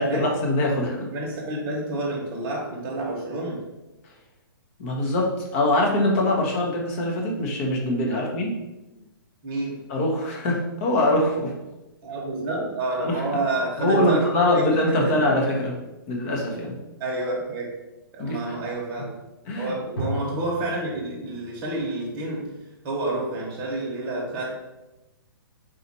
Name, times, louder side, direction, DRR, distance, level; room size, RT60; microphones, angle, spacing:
voice 1, 0.0-1.1 4.8-8.5 9.9-11.5 13.0-13.2 13.8-15.8 16.1-16.7 18.2-18.5 19.5-19.8, left 1 dB, 35° left, -1 dB, 0.9 m, -23 dB
voice 2, 0.9-3.6 8.1-8.3 9.4-9.8 12.0-15.4 17.0-17.7 18.1-19.1 19.6-22.5 22.8-24.6, right 2 dB, 25° right, -3 dB, 1.0 m, -29 dB
sound 1, 20.0-21.8, right 1 dB, 70° left, 1.3 m, -36 dB
4.0 x 2.4 x 4.1 m, 1.0 s
hypercardioid pair, 160°, 12 cm